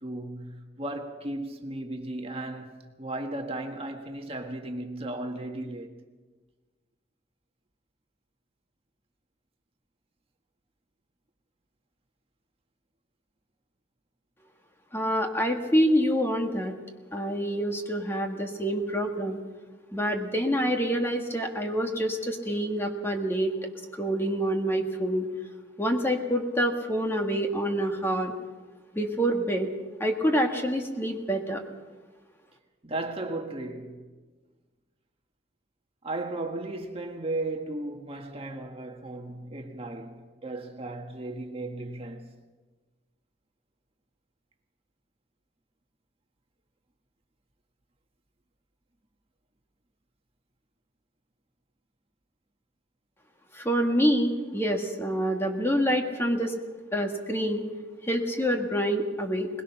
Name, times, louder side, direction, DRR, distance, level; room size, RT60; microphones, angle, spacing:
voice 1, 0.0-2.7 3.0-5.9 19.5-19.7 32.8-34.0 36.0-42.3, right 2 dB, 30° right, 1.6 m, -35 dB
voice 2, 14.9-16.7 17.1-19.4 19.9-23.5 24.0-25.3 25.8-28.3 28.9-29.7 30.0-31.6 53.5-56.5 56.9-57.6 58.0-59.5, equal, 15° left, 1.8 m, -26 dB
22.0 x 21.0 x 5.9 m
head